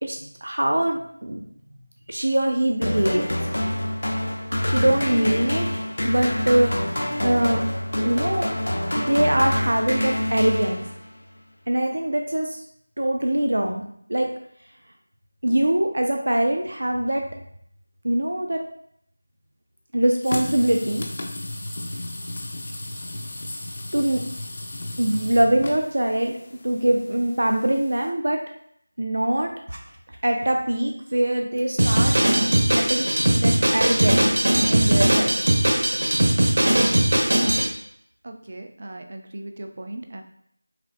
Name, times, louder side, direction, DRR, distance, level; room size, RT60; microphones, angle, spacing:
voice 1, 0.0-1.4 2.1-3.2 4.6-5.7 6.0-6.8 7.2-7.6 8.0-8.5 8.9-10.8 11.7-12.6 13.0-13.8 14.1-14.3 15.4-17.3 18.0-18.6 19.9-21.0 23.9-24.3 25.0-26.4 26.6-28.4 29.0-29.8 30.2-32.2 32.7-33.1 33.4-34.2 34.7-35.5, right 1 dB, 80° right, 2 dB, 0.6 m, -23 dB
sound 1, 2.8-11.2, left 1 dB, 75° left, 0.8 m, -26 dB
sound 2, 20.2-28.1, left 1 dB, 25° left, 0.5 m, -35 dB
Drum kit, 31.8-37.7, right 1 dB, 55° right, 0.9 m, -19 dB
voice 2, 38.2-40.2, right 1 dB, 35° right, 5 dB, 0.4 m, -38 dB
5.6 x 2.6 x 2.4 m, 0.68 s
figure-of-eight pair, 180°, 0 cm